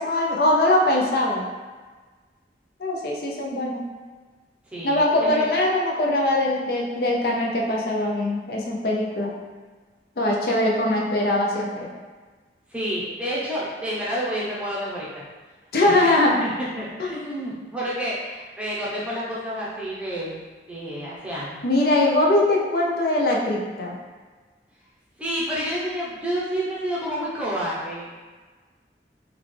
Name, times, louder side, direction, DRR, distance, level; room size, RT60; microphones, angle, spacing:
voice 1, 0.0-1.5 2.8-3.8 4.8-9.3 10.2-11.9 15.7-16.4 17.0-17.2 21.6-24.0, left 1 dB, 55° left, -2 dB, 0.5 m, -22 dB
voice 2, 4.7-5.5 12.7-15.2 15.8-16.1 16.4-20.4 20.7-21.6 25.2-28.1, equal, 5° right, -8 dB, 0.6 m, -29 dB
3.7 x 2.3 x 3.2 m, 1.4 s
head